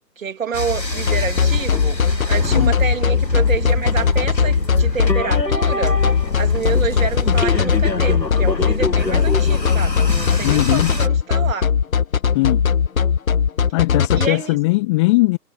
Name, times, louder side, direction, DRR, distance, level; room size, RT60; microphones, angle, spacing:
voice 1, 0.2-6.0 6.4-11.7 14.2-14.6, right 6 dB, 50° right, 3.4 m, -28 dB
sound 1, 0.5-11.1, left 2 dB, 90° left, 2.0 m, -24 dB
sound 2, 1.1-14.3, left 7 dB, 55° left, 1.1 m, -18 dB
sound 3, 5.9-11.0 11.7-12.4, left 8 dB, 40° left, 2.4 m, -30 dB
voice 2, 10.4-10.9 12.3-12.6 13.7-15.4, left 22 dB, 15° left, 1.9 m, -19 dB
figure-of-eight pair, 135°, 49 cm